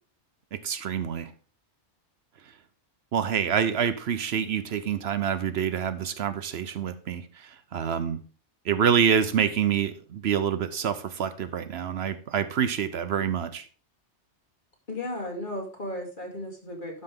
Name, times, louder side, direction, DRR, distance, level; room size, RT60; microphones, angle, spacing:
voice 1, 0.5-1.3 3.1-8.2 8.7-13.6, right 8 dB, 70° right, 12 dB, 0.9 m, -27 dB
voice 2, 14.9-17.0, left 1 dB, 45° left, 1 dB, 2.5 m, -35 dB
12.0 x 5.6 x 3.7 m, 0.38 s
omnidirectional pair, 1.2 m